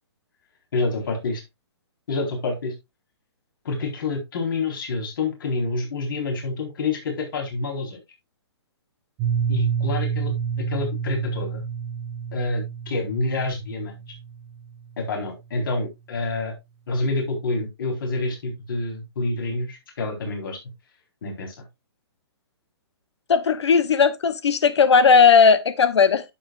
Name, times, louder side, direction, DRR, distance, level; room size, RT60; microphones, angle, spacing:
voice 1, 0.7-1.4 2.1-2.7 3.6-8.0 9.5-11.6 12.3-14.0 15.0-16.5 16.9-20.6 21.2-21.6, left 3 dB, 50° left, 4.1 m, -28 dB
Piano, 9.2-14.8, right 7 dB, 15° right, 0.5 m, -29 dB
voice 2, 23.3-26.2, left 5 dB, 85° left, 0.9 m, -16 dB
10.0 x 7.6 x 2.4 m
hypercardioid pair, 170°, 14 cm